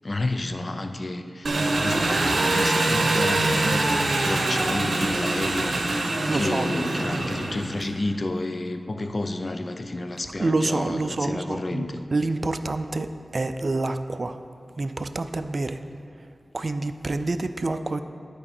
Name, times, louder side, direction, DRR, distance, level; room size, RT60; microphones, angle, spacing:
voice 1, 0.0-1.5 1.8-3.9 4.2-5.8 6.3-12.0, left 2 dB, 50° left, 8 dB, 0.5 m, -30 dB
Engine, 1.4-7.9, right 2 dB, 80° right, 0.7 m, -24 dB
voice 2, 6.3-6.7 10.4-11.9 12.1-14.4 14.8-15.8 16.5-18.0, right 2 dB, 55° right, 10 dB, 0.4 m, -27 dB
11.5 x 4.8 x 4.3 m, 2.4 s
cardioid pair, 45°, 0 cm